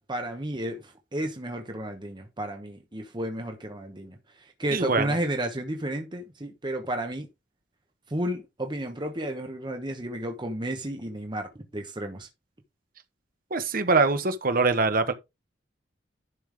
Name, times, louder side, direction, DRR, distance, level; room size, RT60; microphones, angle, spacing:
voice 1, 0.1-4.2 4.6-7.3 8.1-12.3, right 1 dB, 25° right, 1.2 m, -32 dB
voice 2, 4.7-5.2 13.5-15.1, right 3 dB, 50° right, 1.3 m, -23 dB
11.0 x 5.5 x 3.6 m
head